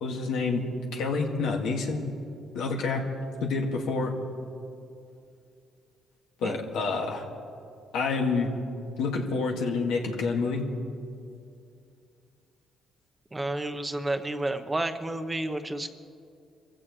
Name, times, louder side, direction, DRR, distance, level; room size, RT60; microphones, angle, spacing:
voice 1, 0.0-0.7 0.9-2.1 2.5-3.0 3.4-4.1 6.4-7.2 7.9-8.5 9.0-10.7, left 4 dB, 85° left, 1 dB, 2.0 m, -28 dB
voice 2, 13.3-15.9, right 1 dB, 15° right, 8 dB, 0.9 m, -31 dB
26.5 x 15.5 x 3.2 m, 2.5 s
cardioid pair, 90°, 0 cm